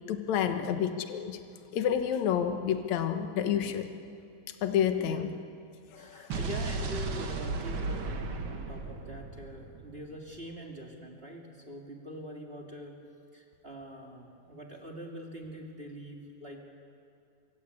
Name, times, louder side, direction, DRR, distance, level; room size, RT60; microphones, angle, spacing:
voice 1, 0.1-1.4 1.7-3.9 4.6-5.3 5.9-6.2, left 9 dB, 60° left, 7 dB, 2.1 m, -29 dB
voice 2, 5.0-5.3 5.9-13.0 13.3-16.6, right 1 dB, 20° right, 0 dB, 1.8 m, -44 dB
Explosion, 6.3-10.4, right 3 dB, 60° right, 1.3 m, -35 dB
25.5 x 24.0 x 8.5 m, 2.4 s
omnidirectional pair, 4.9 m